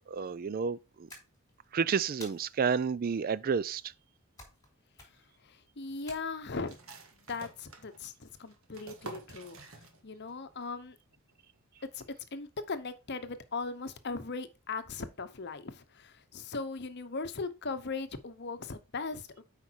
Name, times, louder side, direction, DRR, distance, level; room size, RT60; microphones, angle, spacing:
voice 1, 0.1-0.8 1.7-3.8, right 6 dB, 40° right, 0.4 m, -30 dB
sound 1, 1.1-1.7 2.2-2.8 4.4-4.7 4.9-5.4 6.1-6.8, left 2 dB, 15° left, 4.0 m, -51 dB
voice 2, 5.4-6.8 7.3-10.9 11.9-12.1 12.3-19.4, left 4 dB, 50° left, 0.9 m, -39 dB
sound 2, 6.7-10.3 10.6-10.7 11.1-11.6, right 3 dB, 65° right, 1.6 m, -49 dB
8.3 x 5.2 x 4.6 m
head